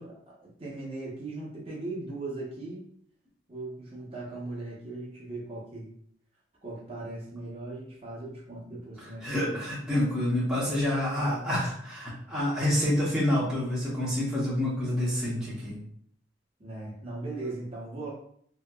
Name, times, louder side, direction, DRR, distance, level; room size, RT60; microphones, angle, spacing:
voice 1, 0.0-2.9 3.5-5.9 6.6-9.6 16.6-18.1, right 2 dB, 30° right, -5 dB, 0.8 m, -39 dB
voice 2, 9.2-15.8, left 1 dB, 5° right, -9 dB, 0.7 m, -28 dB
2.8 x 2.8 x 2.3 m, 0.64 s
head